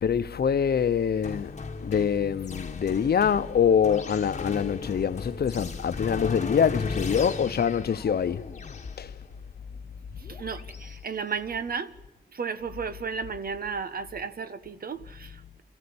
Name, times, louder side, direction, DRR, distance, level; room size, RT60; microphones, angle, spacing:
voice 1, 0.0-8.5 9.0-9.1, left 7 dB, 85° left, 0.8 m, -25 dB
sound 1, 1.2-11.0, left 4 dB, 50° left, 1.3 m, -37 dB
voice 2, 10.2-11.9 12.3-15.6, right 5 dB, 70° right, 1.3 m, -34 dB
25.5 x 15.0 x 8.6 m
wide cardioid pair, 100°, 16 cm